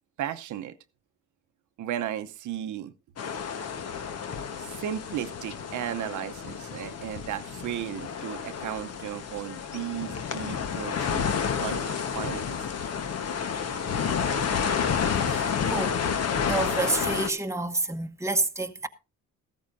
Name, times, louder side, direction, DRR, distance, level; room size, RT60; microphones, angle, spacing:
voice 1, 0.2-0.8 1.8-2.9 4.6-11.3 11.6-12.7, right 11 dB, 75° right, 0.9 m, -35 dB
sound 1, 3.2-17.3, left 6 dB, 55° left, 1.2 m, -30 dB
voice 2, 15.2-16.0 16.4-18.9, right 3 dB, 10° right, 1.0 m, -29 dB
15.0 x 13.5 x 2.6 m
cardioid pair, 90°, 30 cm